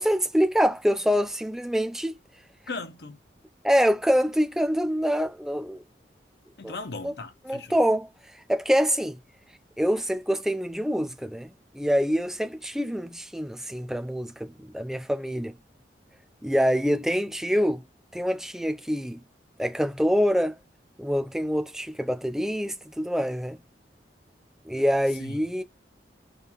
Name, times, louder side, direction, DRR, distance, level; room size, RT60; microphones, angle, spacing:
voice 1, 0.0-2.2 3.6-5.8 6.6-6.8 7.0-7.1 7.5-8.1 8.5-9.2 9.8-15.5 16.4-17.8 18.1-19.2 19.6-20.5 21.0-23.6 24.7-25.6, equal, 5° right, 0.3 m, -25 dB
voice 2, 2.7-3.2 6.6-7.8 25.2-25.4, left 3 dB, 70° left, 0.8 m, -37 dB
5.0 x 2.7 x 2.9 m
head